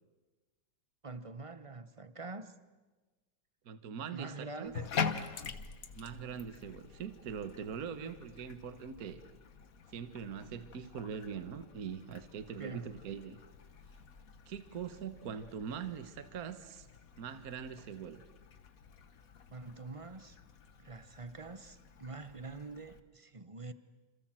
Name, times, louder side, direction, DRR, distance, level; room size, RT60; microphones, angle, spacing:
voice 1, 1.0-2.5 4.1-4.9 12.6-12.8 19.5-20.4 20.8-23.7, right 3 dB, 25° right, 0.7 m, -45 dB
voice 2, 3.6-4.7 5.9-9.2 9.9-13.4 14.5-16.9 17.2-18.2, right 7 dB, 50° right, 1.6 m, -42 dB
Bathtub (filling or washing), 4.6-23.0, left 6 dB, 50° left, 1.6 m, -45 dB
28.5 x 27.0 x 7.6 m
omnidirectional pair, 2.1 m